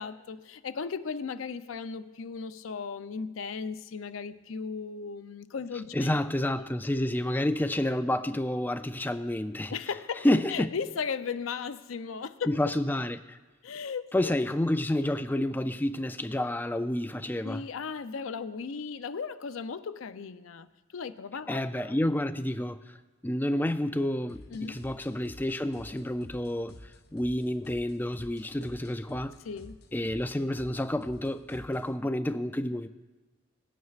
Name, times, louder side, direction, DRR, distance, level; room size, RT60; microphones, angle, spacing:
voice 1, 0.0-6.2 6.6-6.7 9.7-12.5 13.6-14.3 17.4-20.7 20.9-22.0 24.5-24.8 29.4-29.8, left 5 dB, 80° left, 0.5 m, -36 dB
voice 2, 5.9-9.7 10.2-10.7 12.5-13.4 14.1-17.6 21.5-22.8 23.2-26.8 27.1-29.3 29.9-32.9, left 1 dB, 10° left, 0.3 m, -29 dB
sound 1, 24.3-32.0, left 1 dB, 55° left, 0.9 m, -51 dB
18.5 x 9.3 x 2.4 m
head